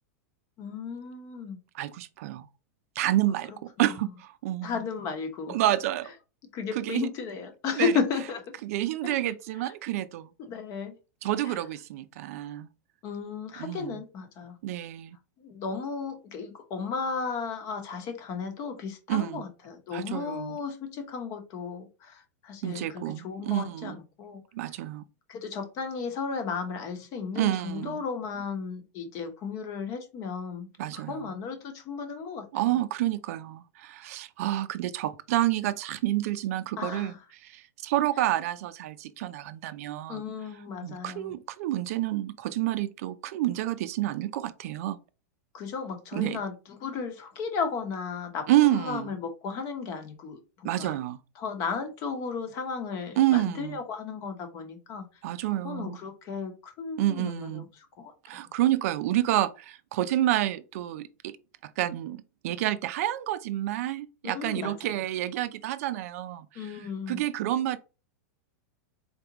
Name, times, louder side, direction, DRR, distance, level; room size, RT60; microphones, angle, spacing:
voice 1, 0.6-1.6 4.6-5.6 6.5-8.4 9.0-9.2 10.5-11.0 11.5-11.6 13.0-14.6 15.4-24.4 25.3-32.4 36.8-37.2 40.1-41.4 45.5-46.5 46.8-51.0 51.4-55.1 55.6-57.7 58.0-58.5 64.2-65.0 66.5-67.2, left 5 dB, 40° left, 1.0 m, -34 dB
voice 2, 1.7-2.4 3.0-4.8 5.5-6.1 6.7-7.1 7.8-7.9 8.6-10.3 11.2-12.7 13.6-14.0 14.6-15.2 19.1-19.4 19.9-20.6 22.6-24.0 24.5-25.0 27.3-28.0 30.8-31.3 32.5-37.1 37.4-40.2 40.8-45.0 46.1-46.4 48.5-49.1 50.6-51.2 53.2-53.8 55.2-56.0 57.0-57.6 58.3-61.4 61.6-66.7 67.1-67.8, right 14 dB, 65° right, 0.5 m, -29 dB
4.0 x 3.5 x 2.9 m
supercardioid pair, 135°, 9 cm